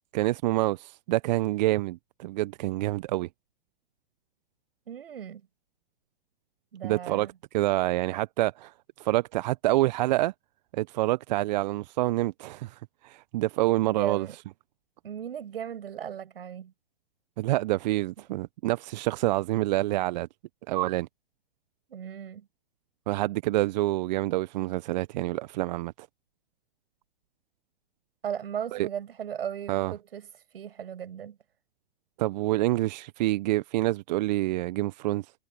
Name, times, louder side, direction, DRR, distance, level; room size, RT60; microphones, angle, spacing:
voice 1, 0.1-3.3 6.8-7.3 7.5-10.3 10.7-14.3 17.4-20.3 20.7-21.1 23.1-26.1 28.7-28.9 29.7-29.9 32.2-35.3, right 17 dB, 45° right, 0.8 m, -27 dB
voice 2, 4.9-5.4 6.7-7.3 13.9-14.4 15.0-16.7 21.9-22.5 28.2-30.3 30.5-31.4, right 9 dB, 70° right, 7.7 m, -36 dB
hypercardioid pair, 120°, 31 cm